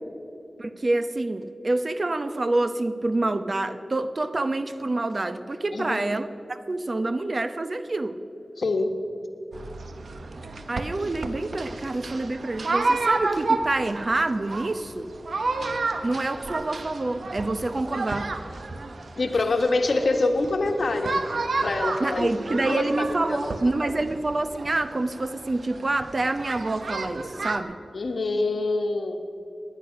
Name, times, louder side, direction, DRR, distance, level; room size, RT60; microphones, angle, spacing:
voice 1, 0.6-8.2 10.7-15.1 16.0-18.3 22.0-27.8, right 2 dB, 45° right, 10 dB, 0.8 m, -27 dB
voice 2, 5.7-6.1 8.6-8.9 19.2-21.2 21.6-23.5 23.8-24.0 27.9-29.3, left 2 dB, 75° left, 5 dB, 1.4 m, -26 dB
sound 1, 9.5-27.6, right 3 dB, 80° right, 0.9 m, -31 dB
19.0 x 10.5 x 5.9 m, 2.7 s
wide cardioid pair, 70°, 0 cm